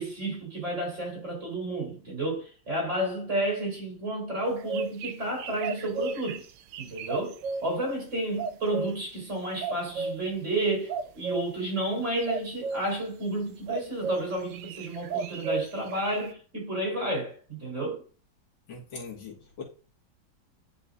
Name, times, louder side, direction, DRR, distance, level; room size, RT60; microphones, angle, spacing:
voice 1, 0.0-6.4 6.8-18.0, right 1 dB, 35° right, 4.2 m, -31 dB
sound 1, 4.4-7.6 8.4-9.0 9.6-10.2 10.9-11.4 12.2-12.9 13.7-14.2 14.5-16.3, right 4 dB, 70° right, 1.3 m, -33 dB
voice 2, 18.7-19.6, left 4 dB, 80° left, 2.6 m, -41 dB
10.0 x 5.3 x 2.6 m
omnidirectional pair, 2.1 m